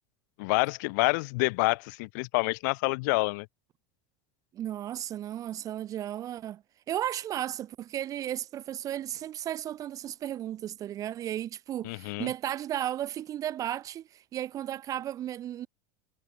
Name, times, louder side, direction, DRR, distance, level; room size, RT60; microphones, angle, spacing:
voice 1, 0.4-3.5 11.8-12.3, left 28 dB, 65° left, 1.8 m, -27 dB
voice 2, 4.5-15.7, right 11 dB, 30° right, 1.8 m, -34 dB
supercardioid pair, 145°, 11 cm